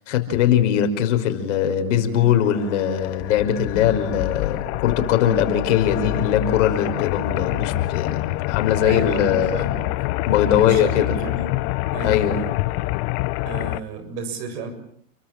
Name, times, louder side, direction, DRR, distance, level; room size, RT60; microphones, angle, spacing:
voice 1, 0.1-8.2 8.5-9.7 10.3-11.1 12.0-12.4, left 9 dB, 55° left, 7 dB, 5.5 m, -21 dB
sound 1, 2.2-13.8, left 19 dB, 40° left, 1.2 m, -26 dB
voice 2, 8.8-9.9 10.3-12.5 13.5-14.7, right 4 dB, 50° right, 9 dB, 7.3 m, -33 dB
29.5 x 24.0 x 7.5 m, 0.62 s
hypercardioid pair, 120°, 42 cm